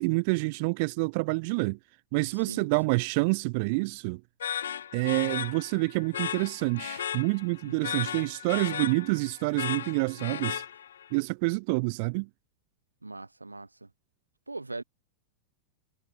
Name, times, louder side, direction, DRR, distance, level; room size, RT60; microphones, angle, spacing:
voice 1, 0.0-1.8 2.1-4.2 4.9-10.6 11.1-12.3, right 29 dB, 45° right, 1.2 m, -27 dB
sound 1, 4.4-11.1, left 9 dB, 65° left, 1.6 m, -36 dB
voice 2, 7.6-8.0 13.0-13.9 14.5-14.8, right 2 dB, 80° right, 2.8 m, -40 dB
figure-of-eight pair, 90°, 0 cm